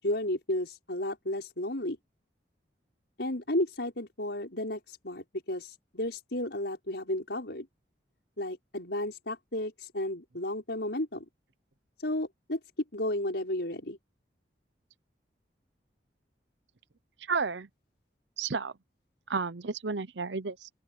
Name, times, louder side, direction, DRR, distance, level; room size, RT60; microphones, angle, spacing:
voice 1, 0.0-2.0 3.2-7.7 8.4-11.2 12.0-12.6 12.9-14.0, left 1 dB, 70° left, 5.7 m, -33 dB
voice 2, 17.3-17.7 18.4-18.7 19.3-20.7, right 5 dB, 80° right, 0.8 m, -32 dB
open air
head